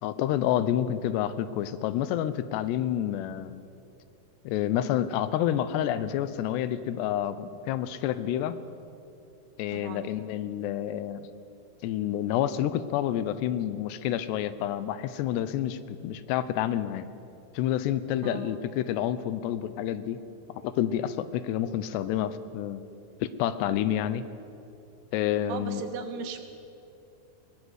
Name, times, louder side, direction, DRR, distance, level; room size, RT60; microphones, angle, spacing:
voice 1, 0.0-3.6 4.4-8.6 9.6-11.2 11.8-17.1 17.5-20.2 20.6-22.8 23.2-24.3 25.1-25.8, left 11 dB, 85° left, 14 dB, 3.0 m, -29 dB
voice 2, 9.7-10.1 18.2-18.5 24.0-24.1 25.5-26.4, right 6 dB, 75° right, 6 dB, 3.6 m, -38 dB
22.0 x 19.0 x 8.2 m, 2.7 s
omnidirectional pair, 4.8 m